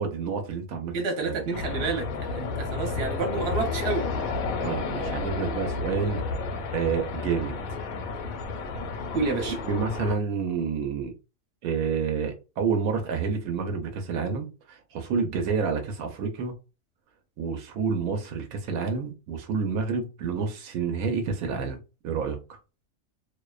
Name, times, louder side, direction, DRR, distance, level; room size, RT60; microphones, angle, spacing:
voice 1, 0.0-0.9 1.2-1.4 4.6-6.2 6.7-7.5 9.4-11.1 11.6-16.5 17.4-21.8 22.0-22.4, right 5 dB, 90° right, 1.0 m, -29 dB
voice 2, 0.9-4.0 9.1-9.6, right 3 dB, 55° right, 1.0 m, -29 dB
sound 1, 1.5-10.2, left 4 dB, 85° left, 1.0 m, -31 dB
2.6 x 2.1 x 2.3 m
omnidirectional pair, 1.4 m